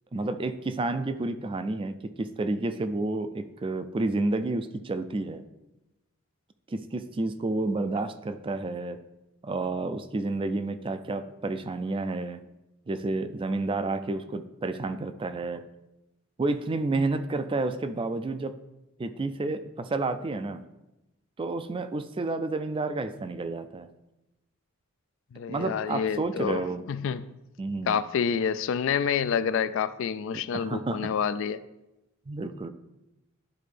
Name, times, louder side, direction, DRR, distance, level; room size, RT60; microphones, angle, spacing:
voice 1, 0.1-5.4 6.7-9.0 9.4-12.4 12.9-15.6 16.4-18.6 19.0-20.6 21.4-23.9 25.5-26.8 27.6-28.0 30.5-31.1 32.3-32.7, right 2 dB, 25° right, 0.3 m, -30 dB
voice 2, 25.3-27.3 27.9-31.6, left 7 dB, 60° left, 0.3 m, -28 dB
11.5 x 4.2 x 3.4 m
head